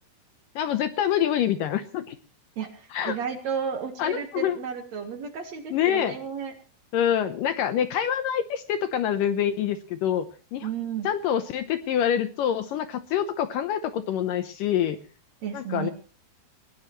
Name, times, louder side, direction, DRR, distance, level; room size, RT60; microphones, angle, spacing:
voice 1, 0.6-2.2 2.9-3.2 4.0-4.6 5.7-6.2 6.9-10.3 10.5-10.7 11.0-15.0 15.5-15.9, left 9 dB, 75° left, 10 dB, 2.2 m, -26 dB
voice 2, 2.6-6.5 10.6-11.1 15.4-15.9, right 7 dB, 55° right, 6 dB, 2.3 m, -33 dB
20.0 x 18.5 x 3.1 m, 0.38 s
omnidirectional pair, 4.5 m